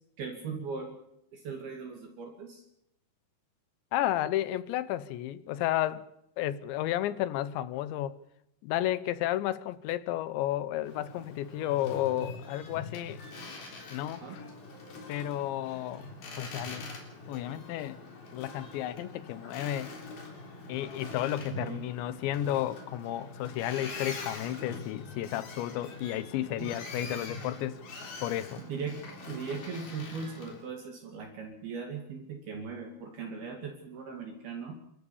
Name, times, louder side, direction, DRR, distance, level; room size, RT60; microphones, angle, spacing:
voice 1, 0.2-1.0 1.3-2.6 14.2-14.4 21.6-21.8 26.6-26.7 28.6-29.0 29.3-34.8, right 5 dB, 55° right, 3.9 m, -39 dB
voice 2, 3.9-6.0 6.4-8.2 8.6-13.2 13.9-14.4 15.1-16.0 16.4-16.9 17.3-18.0 18.3-19.9 20.7-27.8 28.2-28.6, left 13 dB, 75° left, 3.0 m, -32 dB
Boat Water vehicle, 10.8-30.6, left 3 dB, 55° left, 5.2 m, -44 dB
28.5 x 14.0 x 7.2 m
omnidirectional pair, 5.6 m